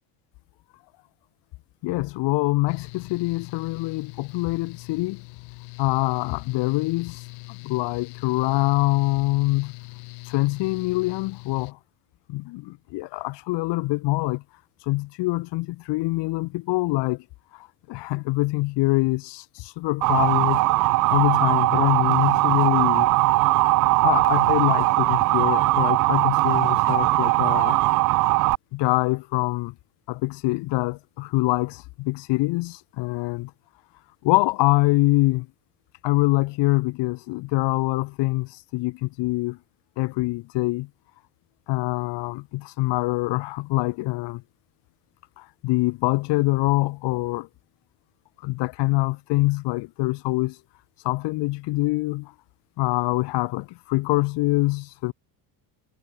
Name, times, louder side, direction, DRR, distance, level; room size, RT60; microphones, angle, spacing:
voice 1, 1.8-5.2 5.8-9.7 10.2-11.8 12.3-14.4 14.8-17.2 17.5-20.6 21.1-23.1 24.0-27.8 28.7-29.7 30.1-33.5 34.2-35.5 36.0-39.6 40.0-40.9 41.7-44.4 45.4-47.5 48.4-50.6 51.0-52.3 52.8-55.1, left 21 dB, 65° left, 2.0 m, -24 dB
Mechanical fan, 2.7-11.7, left 31 dB, 85° left, 3.0 m, -42 dB
Motor vehicle (road) / Siren, 20.0-28.5, right 20 dB, 45° right, 0.4 m, -20 dB
cardioid pair, 150°, 45 cm